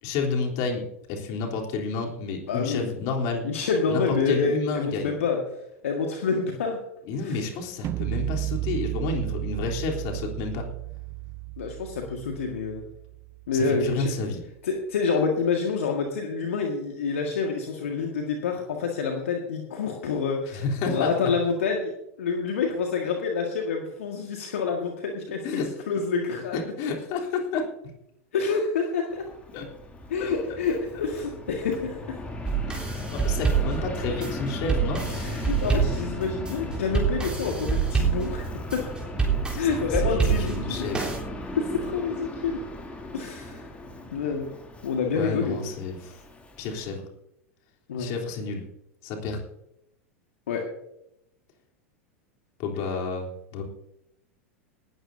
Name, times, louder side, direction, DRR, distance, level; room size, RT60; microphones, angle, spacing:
voice 1, 0.0-3.4 3.9-5.1 7.1-10.7 13.5-14.4 20.5-21.1 25.4-25.7 26.5-27.7 29.5-29.7 30.2-30.3 32.7-35.0 39.5-41.0 45.1-46.2 46.6-47.0 48.0-48.6 49.0-49.4 52.6-53.6, left 4 dB, 50° left, 0 dB, 3.5 m, -30 dB
voice 2, 2.5-2.9 3.4-5.4 5.8-6.8 7.2-7.4 11.6-12.8 13.5-14.1 14.6-21.9 22.2-26.7 28.3-29.3 30.1-32.2 35.1-38.9 39.6-40.9 41.5-42.6 43.1-43.6 44.1-44.5 44.8-45.6 47.9-48.1 50.5-50.6, left 5 dB, 70° left, 1 dB, 1.8 m, -28 dB
sound 1, 7.8-13.8, right 17 dB, 35° right, 0.6 m, -33 dB
Fixed-wing aircraft airplane, 29.1-46.9, left 1 dB, 15° left, 2.8 m, -36 dB
sound 2, 32.5-41.2, right 6 dB, 10° right, 3.7 m, -27 dB
19.0 x 13.5 x 2.7 m, 0.83 s
figure-of-eight pair, 90°, 8 cm